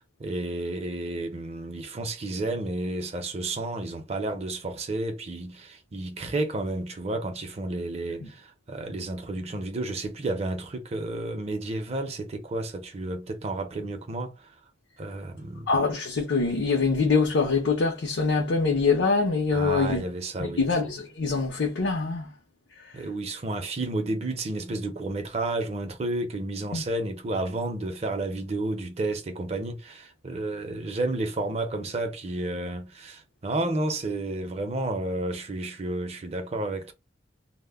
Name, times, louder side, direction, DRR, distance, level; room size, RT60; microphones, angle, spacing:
voice 1, 0.2-14.3 15.0-15.7 19.5-20.6 22.9-36.9, right 2 dB, 35° right, 0.5 m, -31 dB
voice 2, 15.7-20.0 20.4-22.3 26.7-26.8, left 4 dB, 75° left, 0.6 m, -24 dB
2.1 x 2.0 x 3.3 m
head